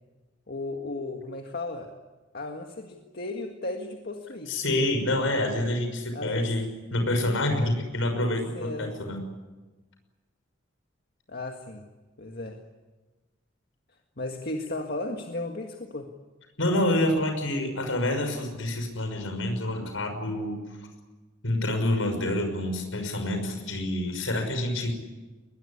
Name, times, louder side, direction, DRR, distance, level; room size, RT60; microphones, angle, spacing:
voice 1, 0.5-1.9 2.3-4.6 6.1-6.5 7.4-7.7 8.5-9.0 11.3-11.8 12.2-12.6 14.2-16.1, left 2 dB, 50° left, 3 dB, 1.8 m, -35 dB
voice 2, 4.5-9.2 16.6-20.6 21.4-24.9, left 1 dB, 80° left, 5 dB, 6.0 m, -27 dB
21.5 x 21.0 x 9.9 m, 1.2 s
head